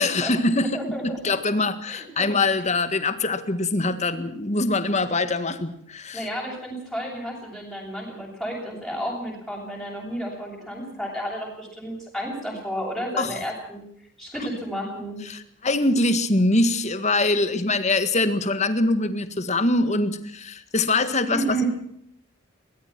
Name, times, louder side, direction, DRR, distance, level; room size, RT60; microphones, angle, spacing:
voice 1, 0.0-6.3 13.2-13.4 15.3-21.6, left 2 dB, 35° left, 11 dB, 1.8 m, -23 dB
voice 2, 0.7-1.3 1.9-2.3 6.1-13.8 14.2-15.2 21.3-21.7, right 1 dB, ahead, -3 dB, 8.0 m, -32 dB
23.5 x 19.0 x 6.1 m, 0.69 s
head